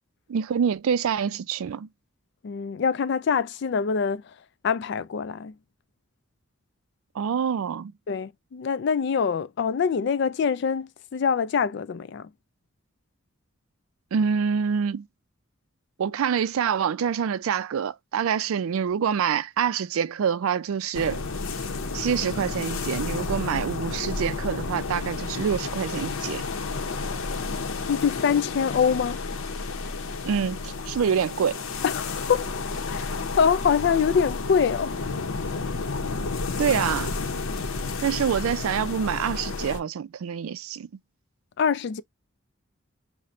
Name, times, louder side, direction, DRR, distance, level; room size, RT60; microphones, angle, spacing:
voice 1, 0.3-1.9 7.2-7.9 14.1-15.1 16.0-21.2 21.9-26.4 30.2-31.6 36.6-37.1 38.0-40.9, right 7 dB, 85° right, 0.4 m, -26 dB
voice 2, 2.4-4.3 4.6-5.5 8.1-12.3 27.9-29.2 31.8-32.5 32.9-35.0 41.6-42.0, left 6 dB, 55° left, 0.3 m, -24 dB
sound 1, 20.9-39.8, left 4 dB, 80° left, 0.7 m, -31 dB
5.7 x 2.1 x 2.4 m
head